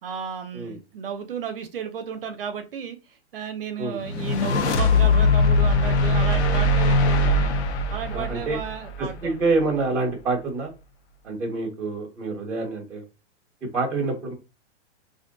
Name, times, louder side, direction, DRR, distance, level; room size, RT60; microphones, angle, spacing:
voice 1, 0.0-7.5 7.9-9.4, right 7 dB, 50° right, 7 dB, 0.5 m, -34 dB
sound 1, 4.0-9.4, left 2 dB, 65° left, 0.8 m, -21 dB
voice 2, 8.1-8.6 9.0-10.7 11.2-13.0 13.7-14.3, right 3 dB, ahead, -3 dB, 0.6 m, -26 dB
4.3 x 2.5 x 2.5 m, 0.29 s
hypercardioid pair, 180°, 36 cm